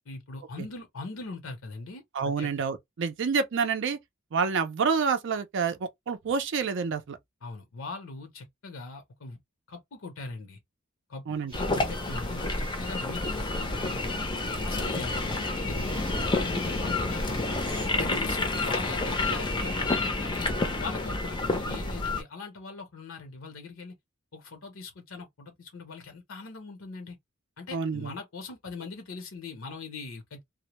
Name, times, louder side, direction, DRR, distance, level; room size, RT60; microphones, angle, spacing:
voice 1, 0.1-2.5 7.4-9.4 9.7-10.6 11.1-14.2 14.6-17.6 18.0-20.5 20.8-23.9 24.3-27.2 27.6-30.4, left 3 dB, 70° left, 0.6 m, -41 dB
voice 2, 2.1-4.0 4.3-7.2 11.3-11.5 27.7-28.1, right 5 dB, 60° right, 0.4 m, -28 dB
sound 1, 11.5-22.2, left 2 dB, 20° left, 0.5 m, -29 dB
sound 2, 11.5-17.9, right 2 dB, 25° right, 0.7 m, -48 dB
2.1 x 2.0 x 2.8 m
head